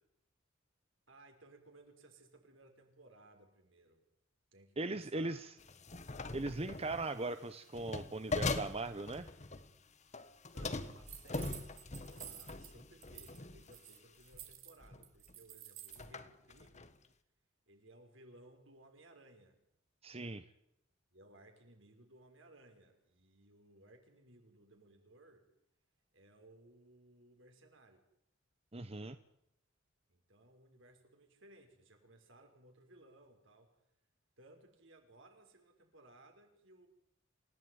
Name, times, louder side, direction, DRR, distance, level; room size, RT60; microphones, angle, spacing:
voice 1, 1.1-4.0 4.5-5.4 10.5-16.9 17.7-19.6 20.1-20.4 21.1-25.5 26.1-28.0 30.1-33.7 34.4-36.9, right 2 dB, 65° right, 4 dB, 5.9 m, -61 dB
voice 2, 4.8-5.5 6.3-9.3 20.0-20.4 28.7-29.2, right 2 dB, 30° right, 11 dB, 0.9 m, -39 dB
sound 1, 5.6-7.1 7.7-9.8 10.1-13.8 14.3-14.5 14.8-15.3 15.9-16.9, left 3 dB, 35° left, 1.5 m, -42 dB
sound 2, 11.1-12.7 13.0-13.4 13.6-16.0, right 12 dB, 85° right, 4.3 m, -51 dB
28.5 x 17.0 x 9.6 m, 0.77 s
head